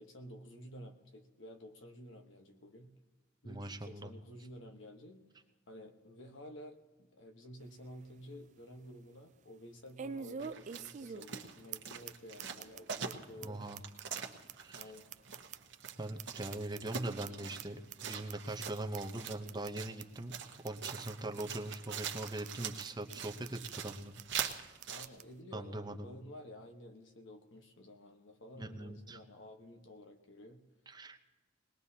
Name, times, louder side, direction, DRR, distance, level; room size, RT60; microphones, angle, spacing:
voice 1, 0.0-2.9 3.4-13.7 14.7-15.1 24.9-30.6, equal, 65° left, 5 dB, 1.2 m, -52 dB
voice 2, 3.4-4.1 13.4-13.8 14.6-14.8 16.0-20.3 20.6-24.6 25.5-26.2 28.6-29.2 30.9-31.2, right 2 dB, 20° right, 5 dB, 0.7 m, -41 dB
sound 1, 7.6-7.7 8.2-8.3 10.0-11.4 11.7-11.8 12.1-12.2 12.4-12.8 13.1-13.2 13.4-13.5 13.8-15.9 16.2-17.3 17.6-17.7 17.9-18.3 18.6-18.7 18.9-19.0 19.3-19.7 20.0-20.1 20.3-20.4 20.7-21.1 21.4-21.5 21.7-21.8 22.0-22.5 22.8-22.9 23.1-23.2 23.4-23.9 24.2-24.3 24.5-24.6 24.8-25.3, right 6 dB, 35° right, 0.4 m, -45 dB
sound 2, 10.4-25.1, right 7 dB, 60° right, 1.1 m, -44 dB
21.0 x 19.5 x 2.8 m, 1.3 s
head